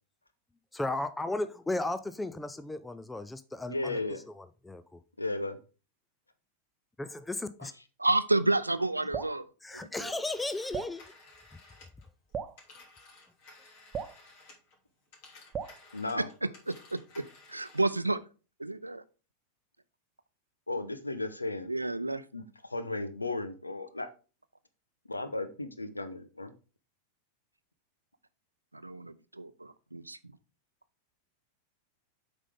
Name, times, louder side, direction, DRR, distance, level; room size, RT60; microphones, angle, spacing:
voice 1, 0.7-5.0 7.0-7.7 9.6-11.0, left 2 dB, 5° left, 0.4 m, -35 dB
voice 2, 3.7-4.2 5.2-5.6 7.6-7.7 15.9-16.3 20.7-21.7 22.3-24.1 25.1-26.5, left 2 dB, 80° left, 0.9 m, -35 dB
voice 3, 8.0-10.1 16.2-16.3 16.7-18.2 18.6-19.0 21.7-22.2 28.7-30.2, right 2 dB, 85° right, 0.5 m, -31 dB
Drip, 9.1-9.4 10.7-11.0 12.3-12.6 13.9-14.2 15.5-15.8, right 7 dB, 25° right, 0.7 m, -36 dB
Telephone, 10.0-14.8 15.1-18.0, left 3 dB, 50° left, 3.1 m, -56 dB
8.2 x 5.4 x 3.6 m
figure-of-eight pair, 90°, 0 cm